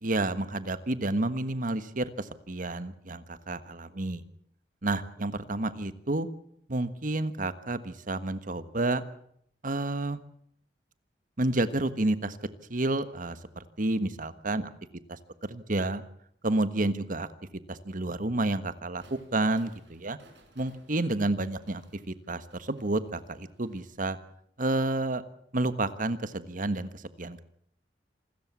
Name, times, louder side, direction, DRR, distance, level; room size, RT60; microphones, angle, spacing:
voice 1, 0.0-4.2 4.8-6.3 6.7-9.0 9.6-10.2 11.4-12.4 12.7-14.7 15.1-16.0 16.4-17.3 17.7-20.2 20.5-24.2 24.6-25.2 25.5-27.4, right 2 dB, 50° right, 12 dB, 1.4 m, -30 dB
sound 1, 19.0-23.8, right 2 dB, 80° right, 5.7 m, -60 dB
26.5 x 13.5 x 8.4 m, 0.68 s
head